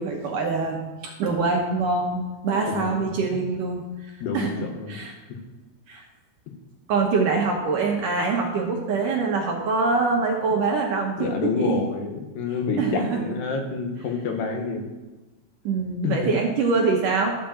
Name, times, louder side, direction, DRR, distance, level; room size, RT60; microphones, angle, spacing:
voice 1, 0.0-5.2 5.9-6.0 6.9-11.8 12.8-13.3 15.6-17.4, right 4 dB, 65° right, 0 dB, 2.3 m, -24 dB
voice 2, 2.7-3.2 4.2-5.0 11.2-14.9 16.0-16.3, left 4 dB, 75° left, 3 dB, 3.3 m, -28 dB
13.5 x 5.1 x 7.1 m, 1.2 s
omnidirectional pair, 4.8 m